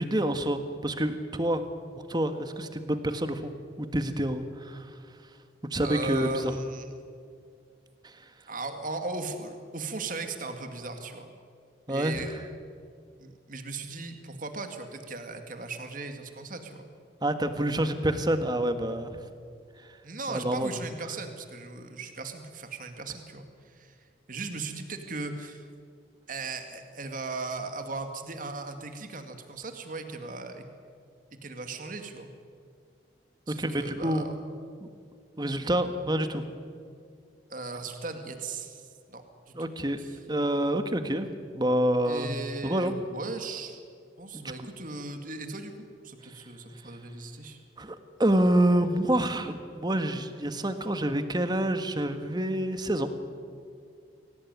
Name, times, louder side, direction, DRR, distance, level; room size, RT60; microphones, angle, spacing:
voice 1, 0.0-1.6 2.0-3.5 3.8-5.0 5.7-6.5 8.0-8.3 11.9-12.2 17.2-19.2 19.8-20.0 20.3-20.8 33.5-34.3 34.8-34.9 35.4-36.4 39.5-40.0 40.3-41.3 41.5-42.9 44.3-44.7 46.2-46.5 47.8-53.2, right 1 dB, 25° right, 9 dB, 1.6 m, -28 dB
voice 2, 5.8-6.9 8.5-11.3 11.9-12.3 13.2-16.9 20.0-25.7 26.3-30.6 31.4-32.3 33.5-34.4 37.5-39.7 40.0-40.2 42.1-43.8 44.2-45.7 46.0-47.6, right 3 dB, 50° right, 6 dB, 2.2 m, -37 dB
24.5 x 18.0 x 9.5 m, 2.2 s
head